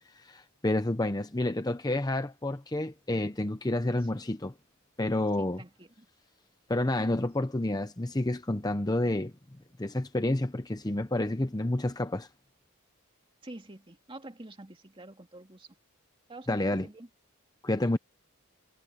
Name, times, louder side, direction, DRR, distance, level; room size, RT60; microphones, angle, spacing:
voice 1, 0.2-4.5 5.0-5.6 6.7-9.3 9.8-12.3 16.5-16.8 17.6-18.0, left 1 dB, 20° left, 0.8 m, -29 dB
voice 2, 4.0-4.3 5.4-6.1 13.4-15.8 16.3-17.1, right 2 dB, 25° right, 2.4 m, -47 dB
head